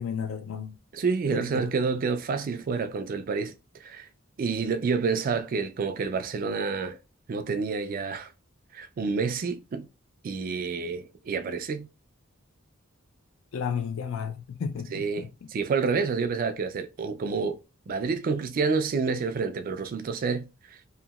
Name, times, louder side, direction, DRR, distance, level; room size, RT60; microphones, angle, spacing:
voice 1, 0.0-0.8 1.3-1.7 13.5-15.5, left 7 dB, 65° left, 0.3 m, -33 dB
voice 2, 0.9-3.5 3.8-4.1 4.4-7.0 7.3-8.3 8.7-9.9 10.2-11.9 14.9-17.6 17.9-20.5, right 5 dB, 45° right, 0.3 m, -28 dB
2.8 x 2.7 x 2.3 m
head